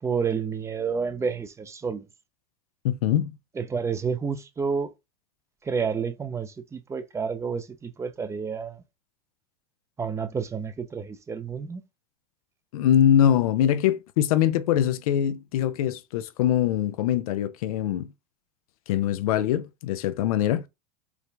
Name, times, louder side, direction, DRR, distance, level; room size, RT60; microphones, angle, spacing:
voice 1, 0.0-2.1 3.6-4.9 5.6-8.8 10.0-11.8, right 5 dB, 15° right, 0.6 m, -30 dB
voice 2, 2.8-3.4 12.7-18.1 18.9-20.7, left 10 dB, 80° left, 0.5 m, -23 dB
4.7 x 2.5 x 3.3 m
supercardioid pair, 120°, 18 cm